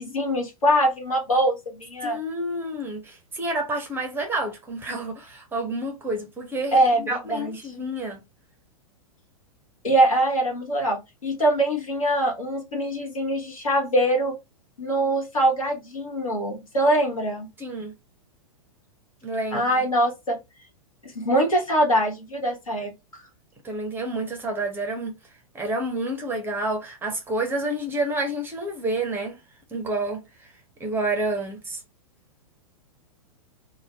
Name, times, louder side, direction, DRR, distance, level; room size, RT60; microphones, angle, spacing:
voice 1, 0.0-2.2 6.7-7.8 9.8-14.3 14.8-17.5 19.5-20.4 21.0-22.9, right 1 dB, 70° left, 1.2 m, -23 dB
voice 2, 2.0-8.2 17.6-17.9 19.2-19.7 23.6-25.2 25.5-29.4 29.7-30.5 30.8-31.8, right 1 dB, 10° right, 0.6 m, -29 dB
2.6 x 2.1 x 3.2 m
figure-of-eight pair, 100°, 18 cm